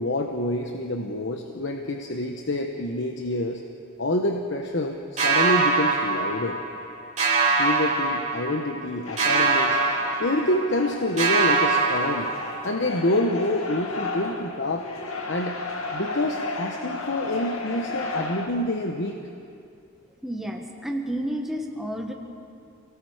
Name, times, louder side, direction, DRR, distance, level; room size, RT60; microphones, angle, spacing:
voice 1, 0.0-3.6 4.0-6.6 7.6-9.8 10.2-12.3 12.6-14.9 15.3-15.6 15.9-19.2, left 1 dB, 60° left, 3 dB, 1.0 m, -27 dB
sound 1, 5.2-6.9 7.2-8.8 9.2-10.9 11.2-12.9, right 4 dB, 35° right, 3.2 m, -23 dB
sound 2, 9.0-18.5, left 3 dB, 85° left, 2.0 m, -34 dB
voice 2, 20.2-22.1, equal, ahead, 1 dB, 1.5 m, -30 dB
29.0 x 18.5 x 5.0 m, 2.7 s
head